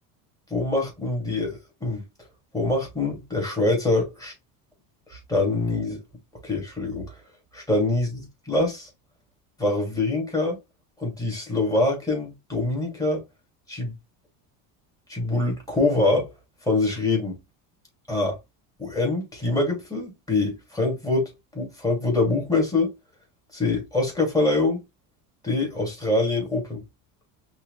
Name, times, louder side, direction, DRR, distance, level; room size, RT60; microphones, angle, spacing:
voice 1, 0.5-2.0 2.5-4.3 5.1-6.0 6.4-7.1 7.5-8.1 8.5-8.9 9.6-10.6 11.0-13.2 13.7-13.9 15.1-16.3 16.6-17.4 18.1-18.4 18.8-22.9 23.5-24.8 25.4-26.8, left 2 dB, 10° left, 2.8 m, -24 dB
5.7 x 3.2 x 2.3 m
cardioid pair, 150°, 40 cm